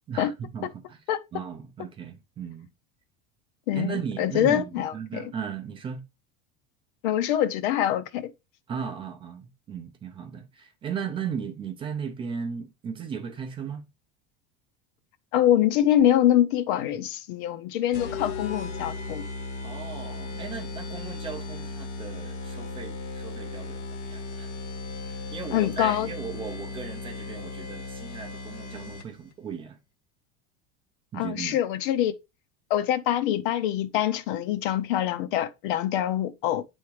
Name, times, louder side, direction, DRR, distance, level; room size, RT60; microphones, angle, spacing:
voice 1, 0.1-1.0 1.3-2.7 3.7-6.0 8.7-13.9 19.6-24.5 25.0-29.8 31.1-31.6, right 7 dB, 20° right, 0.5 m, -36 dB
voice 2, 3.7-5.3 7.0-8.3 15.3-19.2 25.5-26.1 31.1-32.1 32.7-36.6, left 11 dB, 60° left, 0.7 m, -24 dB
sound 1, 17.9-29.3, left 3 dB, 40° left, 0.9 m, -36 dB
9.4 x 3.6 x 3.1 m
cardioid pair, 175°, 29 cm